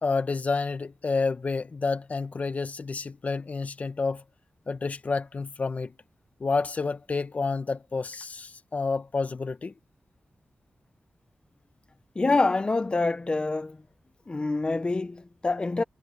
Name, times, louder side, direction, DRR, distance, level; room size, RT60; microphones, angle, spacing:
voice 1, 0.0-4.2 4.7-5.9 6.4-9.7, left 4 dB, 45° left, 1.2 m, -29 dB
voice 2, 12.2-13.8 14.3-15.8, left 3 dB, 30° left, 0.8 m, -26 dB
wide cardioid pair, 130°, 3 cm